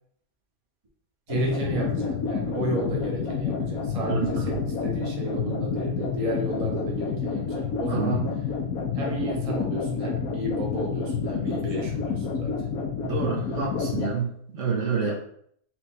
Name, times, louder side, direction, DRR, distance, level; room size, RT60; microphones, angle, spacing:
sound 1, 1.3-14.1, left 5 dB, 80° left, 1.2 m, -29 dB
voice 1, 1.3-8.3 8.9-12.5, right 1 dB, 30° right, -2 dB, 0.9 m, -32 dB
voice 2, 4.1-4.5 7.9-8.2 13.0-15.2, right 5 dB, 60° right, -3 dB, 1.3 m, -28 dB
4.4 x 2.5 x 4.1 m, 0.66 s
omnidirectional pair, 1.5 m